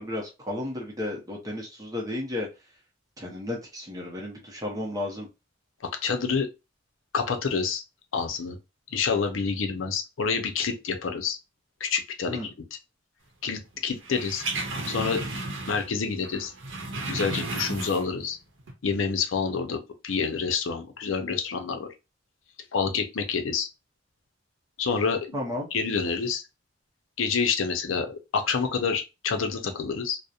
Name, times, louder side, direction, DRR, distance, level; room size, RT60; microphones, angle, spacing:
voice 1, 0.0-2.5 3.2-5.3 12.3-12.5 25.3-25.7, left 1 dB, 20° right, 0.6 m, -33 dB
voice 2, 6.0-6.5 7.1-7.8 8.1-8.6 8.9-11.4 11.8-12.5 13.4-14.4 14.9-15.2 15.7-16.5 17.1-18.4 18.8-21.9 22.7-23.7 24.8-25.4 25.7-26.4 27.2-30.2, left 5 dB, 85° left, 0.5 m, -28 dB
sound 1, 14.0-16.0 16.2-18.3 18.6-18.7, right 2 dB, 70° right, 0.7 m, -33 dB
2.8 x 2.0 x 2.3 m
head